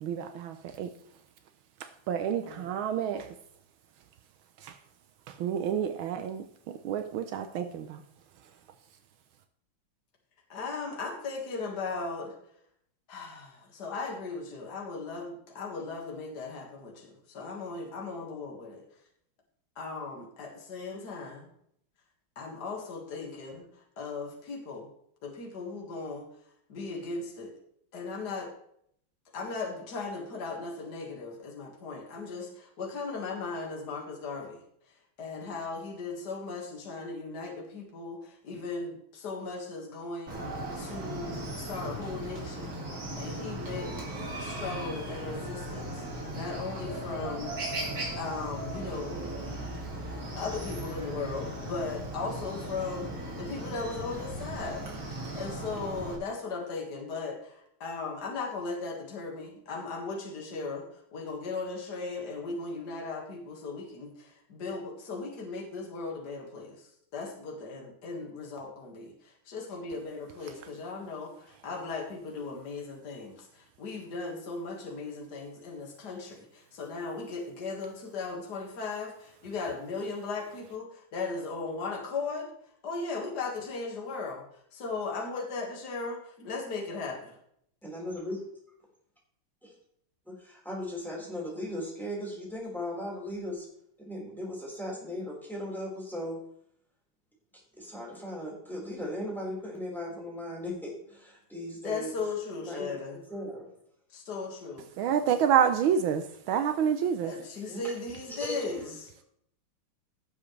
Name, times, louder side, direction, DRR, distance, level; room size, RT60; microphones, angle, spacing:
voice 1, 0.0-0.9 2.1-3.3 4.6-4.7 5.4-8.0 105.0-107.3, right 8 dB, 80° right, 1.5 m, -28 dB
voice 2, 10.5-12.4 13.1-18.8 19.8-21.5 22.4-24.9 25.2-26.3 26.7-27.6 27.9-28.5 29.3-34.6 35.2-40.4 40.8-42.7 43.2-43.9 44.4-47.5 48.2-49.2 50.3-54.9 55.3-82.5 82.8-84.4 84.7-87.4 101.8-103.2 104.1-104.9 107.2-109.1, left 4 dB, 55° left, 2.3 m, -37 dB
Chicken rooster, 40.3-56.2, right 1 dB, 45° right, 2.7 m, -37 dB
voice 3, 87.8-88.4 89.6-89.7 90.3-93.7 94.0-96.4 97.7-102.2 102.6-103.7 107.7-107.9 108.4-108.8, left 1 dB, ahead, 4.3 m, -37 dB
17.0 x 7.4 x 3.2 m
omnidirectional pair, 2.3 m